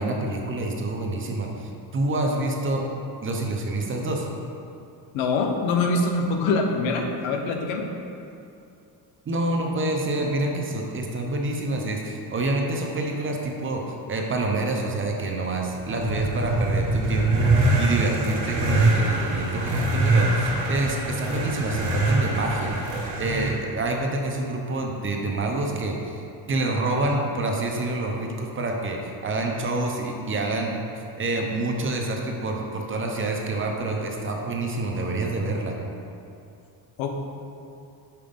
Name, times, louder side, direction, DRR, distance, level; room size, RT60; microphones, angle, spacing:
voice 1, 0.0-2.9 3.2-4.3 9.3-22.7 23.2-26.2 26.5-30.7 31.2-35.8, right 2 dB, 25° right, 1 dB, 0.7 m, -27 dB
voice 2, 5.1-7.9 37.0-37.1, left 3 dB, 85° left, 3 dB, 1.0 m, -24 dB
sound 1, 15.7-23.5, right 2 dB, 65° right, 1.7 m, -23 dB
5.8 x 4.8 x 5.2 m, 2.6 s
cardioid pair, 130°, 45 cm